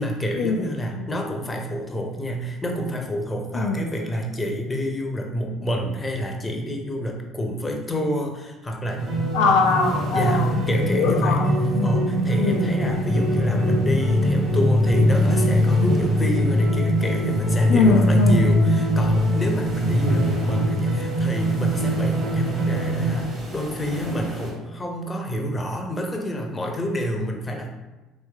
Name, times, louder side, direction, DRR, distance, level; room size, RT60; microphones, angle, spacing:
voice 1, 0.0-9.1 10.1-11.4 11.8-27.7, equal, 20° left, 2 dB, 0.6 m, -28 dB
voice 2, 3.5-3.9 9.3-10.5 10.9-12.0 12.4-12.7 17.7-18.5, left 3 dB, 75° left, 1 dB, 0.3 m, -22 dB
sound 1, 9.0-24.5, equal, 45° right, 1.0 m, -22 dB
3.2 x 3.1 x 2.3 m, 1.1 s
hypercardioid pair, 60°, 0 cm